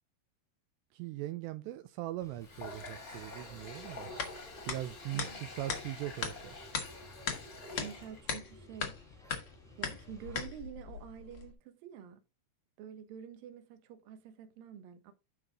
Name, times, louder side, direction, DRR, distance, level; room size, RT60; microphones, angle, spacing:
voice 1, 0.9-4.3 4.7-6.6, right 15 dB, 85° right, 2.7 m, -40 dB
sound 1, 2.2-10.4, equal, ahead, 1.3 m, -55 dB
Water tap faucet, 2.4-8.2, left 2 dB, 35° left, 1.3 m, -47 dB
sound 2, 2.5-11.5, left 6 dB, 70° left, 1.3 m, -41 dB
voice 2, 7.8-9.0 9.8-12.2 12.8-15.1, right 9 dB, 65° right, 2.6 m, -48 dB
11.0 x 4.9 x 3.6 m
omnidirectional pair, 5.1 m